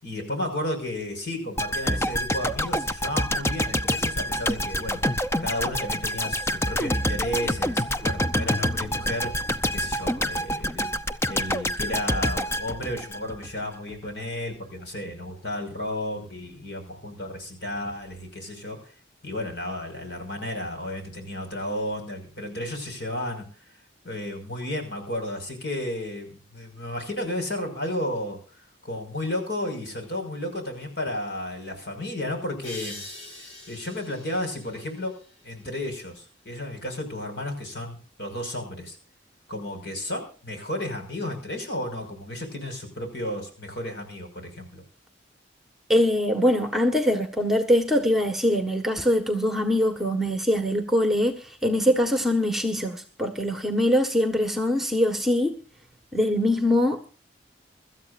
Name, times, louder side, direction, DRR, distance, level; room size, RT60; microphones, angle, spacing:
voice 1, 0.0-5.0 5.4-9.3 9.7-10.9 11.3-18.9 19.2-23.5 24.0-28.4 28.8-33.1 33.7-35.2 35.4-39.0 39.5-44.8, left 1 dB, 60° left, 5.7 m, -33 dB
sound 1, 1.6-13.6 13.9-14.1, equal, 15° left, 0.6 m, -27 dB
sound 2, 32.6-36.0, left 2 dB, 80° left, 7.6 m, -43 dB
voice 2, 45.9-55.6 56.1-57.1, left 1 dB, ahead, 1.4 m, -23 dB
24.5 x 13.5 x 2.6 m
head